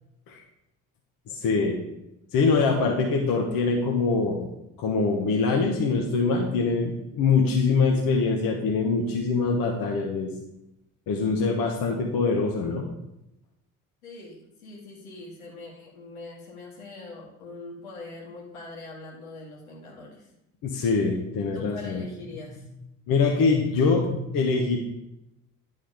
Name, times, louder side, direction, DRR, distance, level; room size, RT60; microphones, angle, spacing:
voice 1, 1.3-1.8 2.3-4.5 4.8-10.3 11.1-12.8 20.6-22.0 23.1-24.8, left 4 dB, 55° left, 1 dB, 1.3 m, -24 dB
voice 2, 14.0-20.3 21.5-22.7, left 2 dB, 80° left, -4 dB, 2.2 m, -42 dB
10.0 x 3.9 x 5.0 m, 0.86 s
hypercardioid pair, 50°, 42 cm